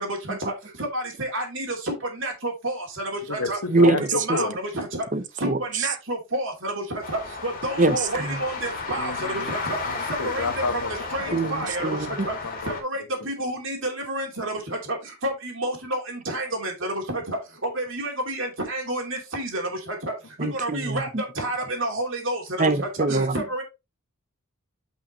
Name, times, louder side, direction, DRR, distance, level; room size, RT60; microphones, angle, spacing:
voice 1, 0.9-1.7 2.2-2.8 3.3-3.6 3.8-4.5 4.8-4.9 5.4-5.5 5.7-6.7 7.4-9.1 9.5-9.8 10.2-10.4 11.1-11.9 12.3-12.4 12.7-14.5 15.2-16.0 16.3-16.9 17.8-19.6 20.6-21.1 21.4-22.4 23.1-23.6, right 1 dB, 60° right, 2.8 m, -29 dB
voice 2, 3.3-4.5 9.0-9.5 10.2-10.9 11.3-11.7 12.2-12.8, left 4 dB, 90° left, 1.3 m, -30 dB
voice 3, 5.1-5.6 7.8-8.4 11.3-11.5 11.8-12.3 20.4-21.0 22.6-23.3, right 2 dB, 35° right, 0.7 m, -23 dB
sound 1, 7.0-12.8, left 4 dB, 40° left, 2.5 m, -33 dB
8.7 x 5.6 x 3.0 m
head